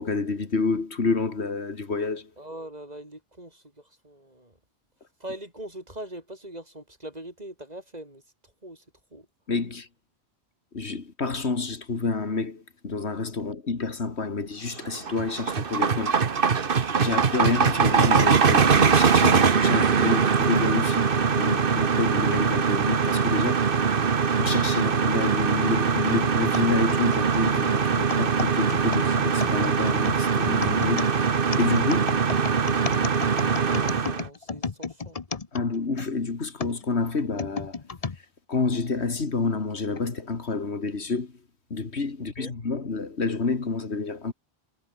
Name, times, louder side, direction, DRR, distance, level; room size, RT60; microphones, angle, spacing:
voice 1, 0.0-2.3 9.5-9.9 10.7-16.2 17.0-23.6 24.4-32.2 35.5-37.8 38.5-41.3 41.7-44.3, left 4 dB, 85° left, 2.5 m, -29 dB
voice 2, 2.4-3.6 4.0-4.5 5.2-8.2 8.6-8.8 9.1-9.3 33.4-35.2 42.4-42.5, right 1 dB, 40° right, 5.8 m, -41 dB
sound 1, 14.8-34.2, right 6 dB, 55° right, 1.4 m, -22 dB
sound 2, 26.5-36.1 36.6-38.2 38.8-38.9 39.8-40.0, left 5 dB, 35° left, 1.1 m, -34 dB
omnidirectional pair, 1.1 m